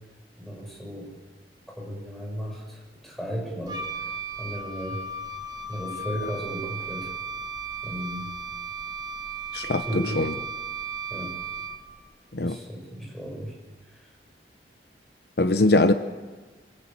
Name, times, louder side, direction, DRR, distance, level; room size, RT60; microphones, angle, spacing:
voice 1, 0.4-1.2 1.8-4.1 4.4-5.0 5.7-7.1 7.8-8.3 9.8-10.2 11.1-11.3 12.4-13.6 13.9-14.0, equal, ahead, -1 dB, 6.3 m, -35 dB
Wind instrument woodwind instrument, 3.7-12.0, right 3 dB, 25° right, 1.7 m, -35 dB
voice 2, 9.5-9.8 10.2-10.3 12.3-12.6 15.4-15.9, left 2 dB, 60° left, 9 dB, 1.0 m, -21 dB
26.5 x 20.5 x 8.9 m, 1.3 s
head